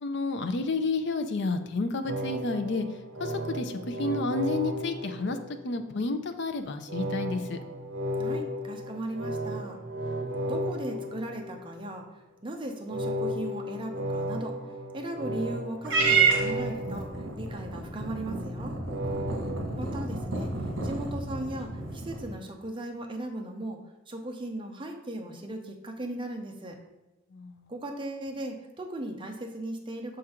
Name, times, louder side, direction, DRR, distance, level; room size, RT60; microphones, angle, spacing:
voice 1, 0.0-2.9 3.2-5.4 5.6-7.6 27.3-27.6, left 3 dB, 60° left, 8 dB, 0.5 m, -30 dB
sound 1, 2.1-5.9 6.9-11.9 12.9-17.9 18.9-19.6, equal, 85° right, 0.7 m, -34 dB
voice 2, 8.2-9.8 10.5-12.1 12.4-14.6 14.9-17.1 17.4-18.8 19.8-20.5 20.8-23.8 24.1-26.8 27.7-30.2, right 1 dB, 25° right, 3 dB, 0.7 m, -37 dB
Purr / Meow, 15.8-22.3, right 4 dB, 65° right, 1.4 m, -29 dB
6.4 x 3.7 x 4.4 m, 1.0 s
head